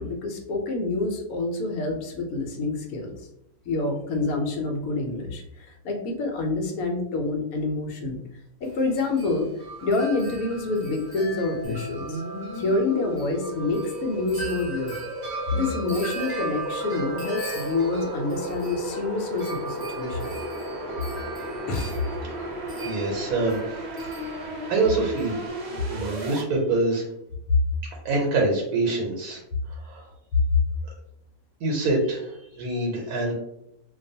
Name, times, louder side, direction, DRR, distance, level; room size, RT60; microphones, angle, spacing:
voice 1, 0.0-3.2 3.7-8.2 8.6-9.5 9.8-12.2 12.5-15.0 15.5-20.3 21.7-22.0, left 3 dB, 75° left, 3 dB, 1.0 m, -27 dB
Wind chime, 8.6-25.5, right 1 dB, 35° right, 0.3 m, -38 dB
sound 1, 11.6-26.4, right 1 dB, 55° right, 0.8 m, -35 dB
voice 2, 22.8-23.6 24.4-27.0 27.8-29.4 29.7-30.1 31.6-33.3, right 2 dB, 85° right, 0 dB, 1.1 m, -26 dB
2.4 x 2.3 x 2.6 m, 0.79 s
omnidirectional pair, 1.6 m